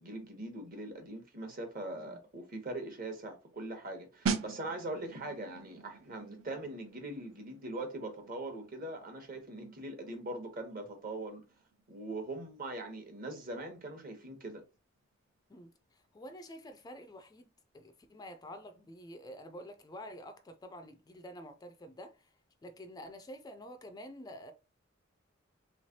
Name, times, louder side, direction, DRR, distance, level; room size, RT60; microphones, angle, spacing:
voice 1, 0.0-11.4 11.9-14.6, right 2 dB, 45° right, 1.0 m, -41 dB
sound 1, 4.3-14.8 15.0-15.3, right 5 dB, 90° right, 0.5 m, -43 dB
voice 2, 16.1-17.5 17.7-22.3 22.6-24.5, equal, 20° left, 0.3 m, -48 dB
3.4 x 3.1 x 2.7 m
head